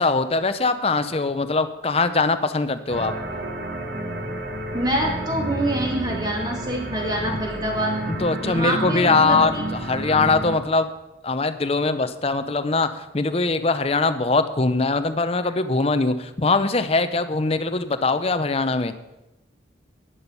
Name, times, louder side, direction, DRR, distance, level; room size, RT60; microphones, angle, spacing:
voice 1, 0.0-3.1 8.1-10.9 11.2-18.9, left 3 dB, 30° left, 10 dB, 0.6 m, -22 dB
sound 1, 2.9-10.6, right 1 dB, 55° right, 1.4 m, -30 dB
voice 2, 4.7-8.0 8.4-9.6, right 1 dB, 20° right, 0 dB, 2.5 m, -26 dB
11.5 x 10.0 x 5.5 m, 0.97 s
head